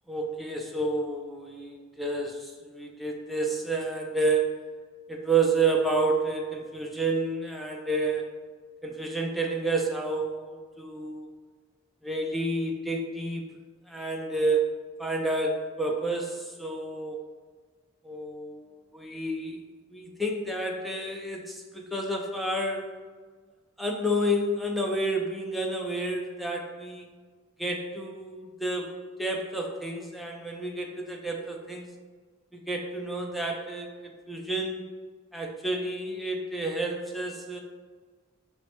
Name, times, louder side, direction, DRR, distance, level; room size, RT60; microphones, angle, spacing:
voice 1, 0.1-4.6 5.1-8.3 8.8-11.3 12.0-13.5 13.9-14.6 15.0-17.2 18.0-19.6 19.9-22.9 23.8-27.1 27.6-28.9 29.2-31.9 32.7-34.8 35.3-37.6, right 2 dB, ahead, 0 dB, 0.3 m, -30 dB
5.5 x 2.1 x 2.9 m, 1.5 s
head